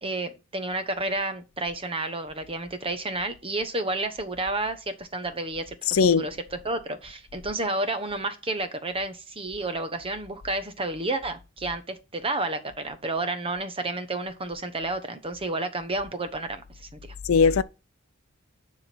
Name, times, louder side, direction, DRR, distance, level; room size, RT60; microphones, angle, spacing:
voice 1, 0.0-17.0, right 2 dB, 25° right, 1.1 m, -31 dB
voice 2, 5.9-6.3 17.3-17.6, left 5 dB, 85° left, 0.5 m, -19 dB
10.0 x 3.7 x 6.0 m
head